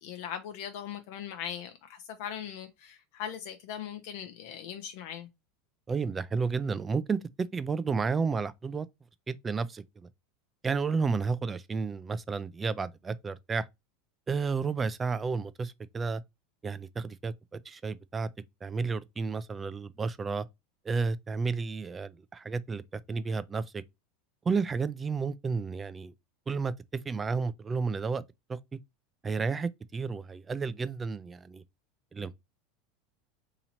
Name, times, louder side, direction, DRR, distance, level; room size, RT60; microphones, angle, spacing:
voice 1, 0.0-5.3, left 9 dB, 60° left, 0.5 m, -40 dB
voice 2, 5.9-8.9 9.3-10.1 10.6-13.7 14.3-16.2 16.6-18.3 18.6-20.5 20.8-23.8 24.5-26.1 26.5-28.2 28.5-28.6 29.2-31.6 32.1-32.4, right 4 dB, 15° right, 0.3 m, -32 dB
2.9 x 2.8 x 4.1 m
supercardioid pair, 145°, 0 cm